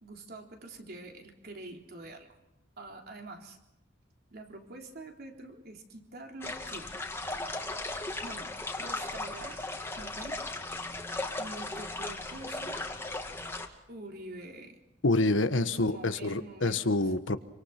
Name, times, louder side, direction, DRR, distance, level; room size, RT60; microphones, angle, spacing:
voice 1, 0.0-2.3 2.8-3.6 4.3-6.9 8.2-9.6 10.0-10.4 11.4-12.8 13.9-14.8 15.5-16.8, right 2 dB, 55° right, 2 dB, 3.7 m, -46 dB
sound 1, 6.4-13.7, left 2 dB, 15° left, 2.3 m, -37 dB
voice 2, 15.0-17.4, left 2 dB, 85° left, 11 dB, 1.4 m, -27 dB
27.5 x 25.0 x 6.0 m, 0.90 s
head